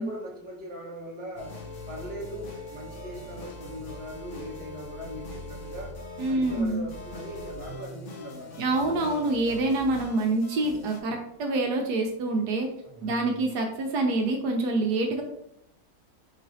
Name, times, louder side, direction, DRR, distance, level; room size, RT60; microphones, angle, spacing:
voice 1, 0.0-1.6 1.9-6.0 6.3-9.2 12.8-13.4, equal, 10° right, -4 dB, 0.7 m, -40 dB
sound 1, 1.4-11.0, left 2 dB, 60° left, 0.5 m, -41 dB
voice 2, 6.2-6.9 8.6-12.7 13.0-15.2, right 2 dB, 70° right, 3 dB, 1.1 m, -26 dB
4.7 x 4.1 x 2.6 m, 0.79 s
omnidirectional pair, 1.9 m